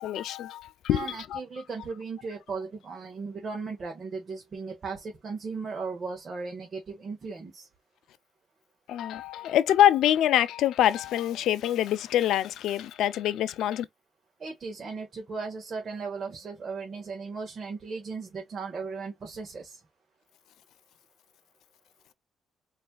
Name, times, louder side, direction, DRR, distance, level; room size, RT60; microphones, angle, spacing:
voice 1, 0.0-1.4 8.9-13.9, left 11 dB, 80° left, 0.4 m, -25 dB
voice 2, 0.9-7.7 14.4-19.8, right 4 dB, 45° right, 1.4 m, -37 dB
4.3 x 3.2 x 2.3 m
cardioid pair, 90°, 0 cm